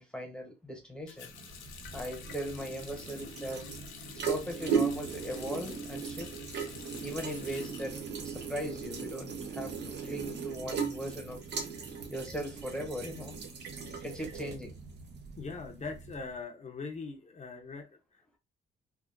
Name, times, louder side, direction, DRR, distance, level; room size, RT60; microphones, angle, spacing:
voice 1, 0.0-1.3 1.9-3.7 4.3-6.4 7.0-8.0 8.2-11.4 12.1-13.4 14.0-14.8, equal, 5° left, 0.9 m, -39 dB
Water tap faucet, 1.1-8.8 9.1-10.2, left 7 dB, 90° left, 0.7 m, -49 dB
sound 1, 1.3-16.3, right 6 dB, 60° right, 0.8 m, -38 dB
voice 2, 15.4-18.4, left 4 dB, 35° left, 0.7 m, -42 dB
3.4 x 2.4 x 2.5 m
cardioid pair, 90°, 20 cm